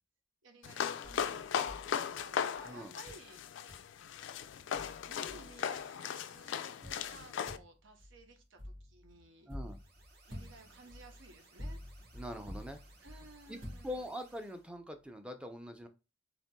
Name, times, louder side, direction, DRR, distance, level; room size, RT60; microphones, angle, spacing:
voice 1, 0.4-1.6 1.9-3.8 5.0-9.5 10.3-11.8 13.0-14.1, right 2 dB, 90° right, 5 dB, 0.9 m, -56 dB
sound 1, 0.6-7.6, left 8 dB, 70° left, 0.3 m, -37 dB
sound 2, 1.0-2.6 3.1-3.3 3.7-3.9 4.4-4.5 4.7-5.8 6.8-14.4, left 1 dB, 70° right, 2.2 m, -49 dB
voice 2, 9.5-9.8 12.1-12.8 13.5-15.9, left 1 dB, 5° right, 6 dB, 0.4 m, -43 dB
sound 3, 9.6-14.7, right 3 dB, 55° right, 1.0 m, -64 dB
4.2 x 2.9 x 2.2 m, 0.29 s
head